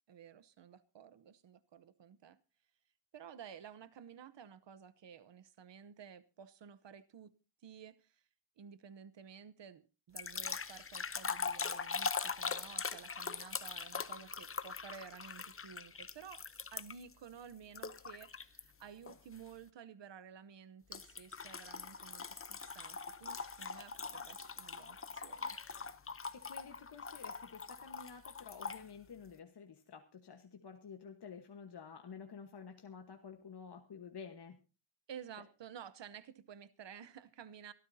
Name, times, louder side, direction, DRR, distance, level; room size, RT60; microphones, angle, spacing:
voice 1, 0.1-2.4 3.1-7.3 7.6-8.2 8.6-16.5 16.7-25.6 35.1-37.7, right 8 dB, 85° right, 0.9 m, -53 dB
sound 1, 10.2-17.1 17.8-18.6 19.1-19.4 20.9-28.8, left 5 dB, 30° left, 0.7 m, -42 dB
voice 2, 26.3-34.6, left 6 dB, 65° left, 1.4 m, -51 dB
24.5 x 13.5 x 2.7 m
wide cardioid pair, 150°, 43 cm